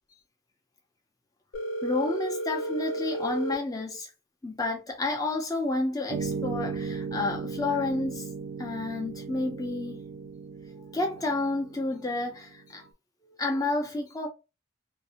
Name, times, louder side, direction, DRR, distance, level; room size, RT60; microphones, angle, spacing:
Telephone, 1.5-3.5, right 1 dB, 70° left, 0.6 m, -32 dB
voice 1, 1.8-4.1 4.4-8.3 8.6-10.0 10.7-12.9 13.2-14.3, left 2 dB, 15° left, 0.5 m, -30 dB
sound 1, 6.1-12.6, right 5 dB, 55° right, 0.3 m, -36 dB
2.6 x 2.0 x 2.7 m
head